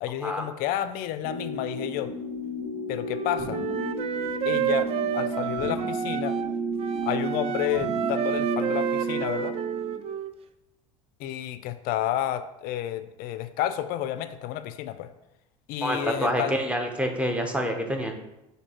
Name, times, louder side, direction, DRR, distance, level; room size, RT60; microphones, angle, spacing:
voice 1, 0.0-2.1 2.9-3.6 4.5-6.4 7.1-9.6 11.2-15.1 15.7-16.6, left 12 dB, 55° left, 12 dB, 0.4 m, -30 dB
sound 1, 1.2-9.9, right 2 dB, 70° right, 1.3 m, -32 dB
Wind instrument woodwind instrument, 3.0-6.5 6.8-10.3, right 9 dB, 35° right, 0.3 m, -30 dB
voice 2, 15.8-18.1, equal, 5° right, 3 dB, 0.7 m, -27 dB
6.0 x 2.7 x 2.9 m, 0.92 s
hypercardioid pair, 80°, 18 cm